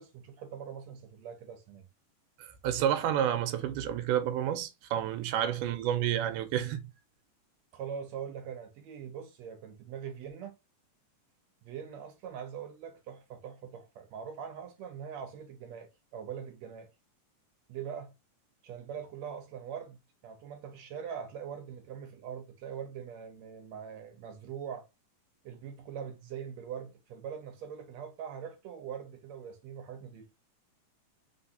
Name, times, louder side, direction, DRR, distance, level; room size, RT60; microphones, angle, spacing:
voice 1, 0.0-1.9 7.7-10.6 11.6-16.9 17.7-18.1 18.6-20.0 20.2-24.9 25.4-30.2, right 8 dB, 70° right, 1.8 m, -42 dB
voice 2, 2.4-6.8, right 10 dB, 85° right, 2.2 m, -30 dB
4.2 x 4.0 x 2.7 m
omnidirectional pair, 3.7 m